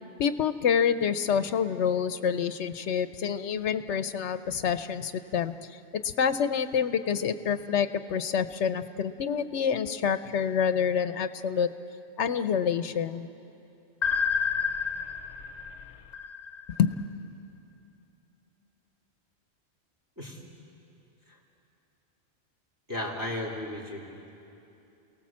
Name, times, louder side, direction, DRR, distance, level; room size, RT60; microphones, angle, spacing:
voice 1, 0.2-5.5 5.9-11.7 12.2-13.3 16.8-17.0, left 7 dB, 80° left, 11 dB, 1.0 m, -27 dB
sound 1, 14.0-16.9, left 6 dB, 45° left, 0.7 m, -30 dB
voice 2, 22.9-24.1, left 1 dB, 15° right, -2 dB, 3.4 m, -35 dB
29.0 x 18.5 x 7.5 m, 2.8 s
omnidirectional pair, 1.2 m